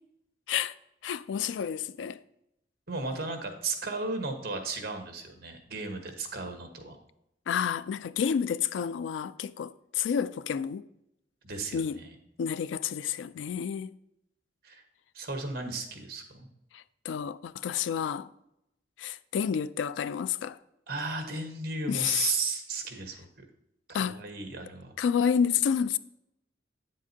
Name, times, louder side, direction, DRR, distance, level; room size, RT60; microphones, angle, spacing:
voice 1, 1.0-2.2 7.5-10.9 11.7-12.0 12.4-14.0 16.7-18.3 19.0-20.6 21.9-22.3 23.9-24.2 25.0-26.0, left 7 dB, 90° left, 0.3 m, -30 dB
voice 2, 2.9-7.0 11.4-12.1 14.6-14.8 15.1-16.5 20.9-23.3 23.9-24.9, right 4 dB, 55° right, 1.2 m, -35 dB
8.9 x 7.4 x 2.7 m
head